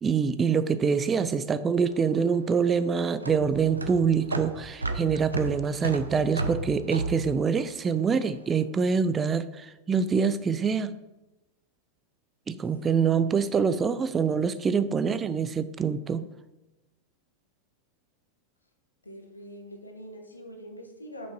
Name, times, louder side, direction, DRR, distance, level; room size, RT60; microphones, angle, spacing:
voice 1, 0.0-10.9 12.5-16.3, right 6 dB, 20° right, 13 dB, 0.3 m, -25 dB
sound 1, 1.9-8.4, right 2 dB, 80° right, 0.5 m, -34 dB
voice 2, 19.0-21.3, equal, 80° left, 3 dB, 1.2 m, -46 dB
6.3 x 5.2 x 4.5 m, 1.0 s
figure-of-eight pair, 90°, 0 cm